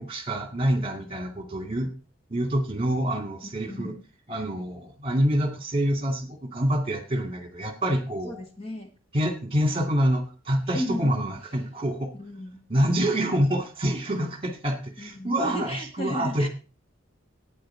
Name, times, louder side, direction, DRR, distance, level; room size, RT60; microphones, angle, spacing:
voice 1, 0.0-1.9 2.3-4.0 4.3-8.4 9.1-12.1 12.7-16.5, equal, 25° right, 5 dB, 2.0 m, -26 dB
voice 2, 3.4-4.0 8.2-8.9 10.7-11.3 12.1-12.6 15.0-16.5, equal, 30° left, 4 dB, 1.6 m, -34 dB
11.5 x 9.2 x 4.4 m, 0.34 s
head